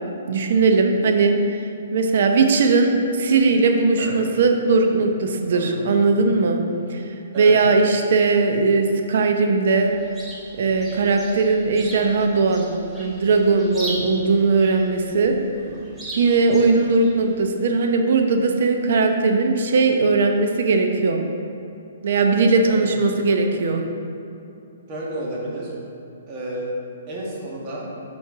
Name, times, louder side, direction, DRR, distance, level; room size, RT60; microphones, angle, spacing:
voice 1, 0.3-1.6 1.9-6.6 6.9-7.0 7.3-9.9 10.6-12.7 13.0-15.3 16.2-21.2 22.0-23.8, right 4 dB, 60° right, 4 dB, 0.7 m, -19 dB
Chirp tweet, 9.8-17.4, right 1 dB, 5° right, 1.1 m, -38 dB
voice 2, 22.6-22.9 24.9-25.7 26.3-26.7 27.1-27.9, right 1 dB, 30° right, -4 dB, 1.4 m, -31 dB
5.9 x 4.4 x 4.7 m, 2.8 s
hypercardioid pair, 150°, 0 cm